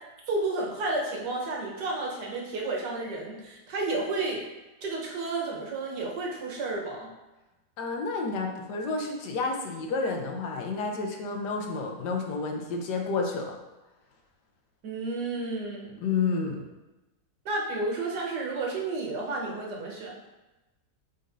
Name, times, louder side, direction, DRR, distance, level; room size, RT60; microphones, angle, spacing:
voice 1, 0.3-4.4 4.8-7.1 14.8-16.0 17.4-20.2, right 3 dB, 80° right, -2 dB, 1.7 m, -31 dB
voice 2, 7.8-13.5 16.0-16.6, left 4 dB, 80° left, 3 dB, 1.4 m, -30 dB
8.9 x 4.0 x 2.6 m, 1.0 s
omnidirectional pair, 1.8 m